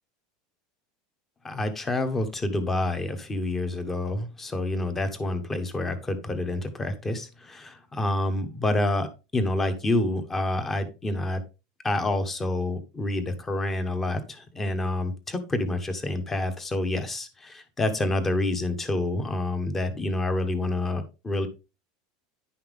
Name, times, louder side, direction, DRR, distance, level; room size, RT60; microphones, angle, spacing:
voice 1, 1.4-11.4 11.8-21.5, left 2 dB, 15° left, 9 dB, 1.1 m, -28 dB
10.0 x 5.7 x 3.5 m, 0.28 s
supercardioid pair, 160°, 2 cm